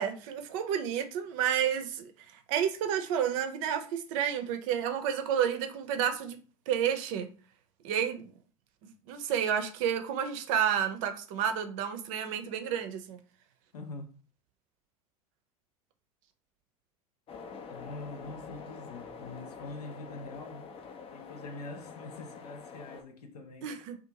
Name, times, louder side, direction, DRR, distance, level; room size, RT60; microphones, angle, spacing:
voice 1, 0.0-2.1 2.5-6.4 6.7-7.3 7.8-8.3 9.1-13.2 23.6-24.0, right 9 dB, 55° right, 0.5 m, -30 dB
voice 2, 13.7-14.1 17.7-20.6 21.0-23.7, left 3 dB, 80° left, 0.6 m, -44 dB
sound 1, 17.3-23.0, left 5 dB, 30° left, 0.5 m, -46 dB
2.5 x 2.4 x 2.8 m
figure-of-eight pair, 80°, 20 cm